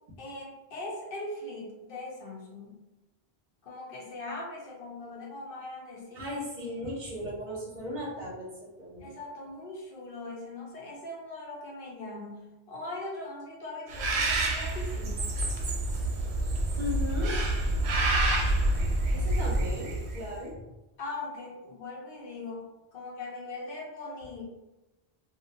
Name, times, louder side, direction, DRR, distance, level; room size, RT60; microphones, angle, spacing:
voice 1, 0.2-2.8 3.6-6.3 9.0-15.4 21.0-22.7 22.9-24.4, left 2 dB, 60° left, -3 dB, 0.8 m, -40 dB
voice 2, 6.1-9.1 16.8-17.4 18.5-18.6 19.1-20.6, left 1 dB, 55° right, -4 dB, 0.7 m, -36 dB
Bird, 13.9-20.3, right 2 dB, 90° right, 0.9 m, -28 dB
2.6 x 2.1 x 2.6 m, 1.0 s
omnidirectional pair, 1.1 m